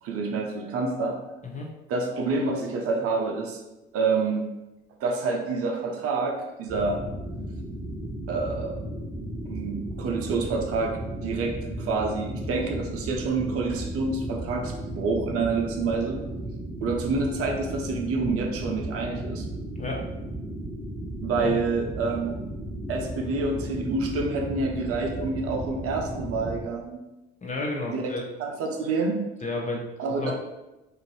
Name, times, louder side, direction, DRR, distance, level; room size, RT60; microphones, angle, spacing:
voice 1, 0.0-1.2 1.9-3.6 3.9-4.5 5.0-7.0 8.3-8.7 9.5-10.9 11.2-16.2 16.8-19.5 21.2-22.4 22.9-27.0 27.9-28.1 28.4-29.2 30.0-30.3, right 3 dB, 50° right, 1 dB, 0.6 m, -28 dB
sound 1, 6.7-26.6, right 1 dB, ahead, 1.3 m, -35 dB
voice 2, 19.8-20.1 21.4-21.6 27.4-28.2 29.4-29.8 30.1-30.3, left 2 dB, 25° left, -1 dB, 0.7 m, -31 dB
2.6 x 2.5 x 3.1 m, 1.0 s
hypercardioid pair, 55°, 30 cm